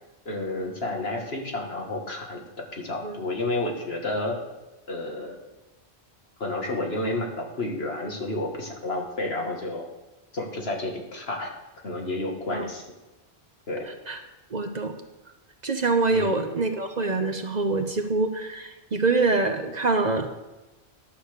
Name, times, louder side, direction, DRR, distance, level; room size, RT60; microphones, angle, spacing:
voice 1, 0.3-2.4 2.8-4.4 4.9-5.4 6.4-9.9 10.3-11.5 11.8-12.8 13.7-13.9 16.1-16.3, left 2 dB, 70° left, 1 dB, 2.1 m, -30 dB
voice 2, 14.5-15.0 15.6-20.3, right 3 dB, 45° right, 6 dB, 0.9 m, -25 dB
11.0 x 6.9 x 6.7 m, 1.1 s
omnidirectional pair, 1.1 m